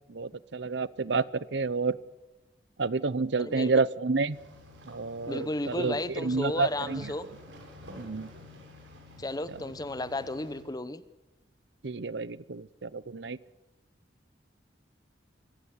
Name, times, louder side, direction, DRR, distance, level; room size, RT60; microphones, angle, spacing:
voice 1, 0.1-2.0 2.8-4.4 4.8-7.1 8.0-8.3 11.8-13.4, right 4 dB, 70° right, 0.8 m, -29 dB
voice 2, 3.4-3.8 5.3-7.3 9.2-11.0, left 2 dB, 20° left, 0.9 m, -34 dB
sound 1, 4.3-10.6, left 1 dB, 85° right, 6.8 m, -49 dB
25.0 x 16.0 x 9.6 m
head